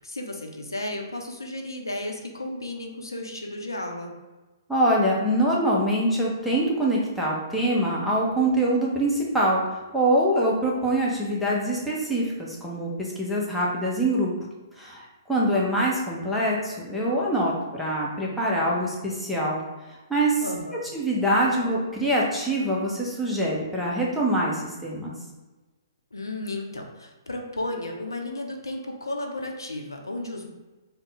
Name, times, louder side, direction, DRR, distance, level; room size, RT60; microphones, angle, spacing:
voice 1, 0.0-4.1 20.4-20.9 26.1-30.5, left 1 dB, 90° left, 2 dB, 0.6 m, -33 dB
voice 2, 4.7-9.6 9.9-14.3 14.8-19.6 19.9-20.4 20.9-25.1, right 1 dB, ahead, -6 dB, 0.7 m, -24 dB
3.6 x 2.1 x 3.9 m, 1.2 s
figure-of-eight pair, 130°, 2 cm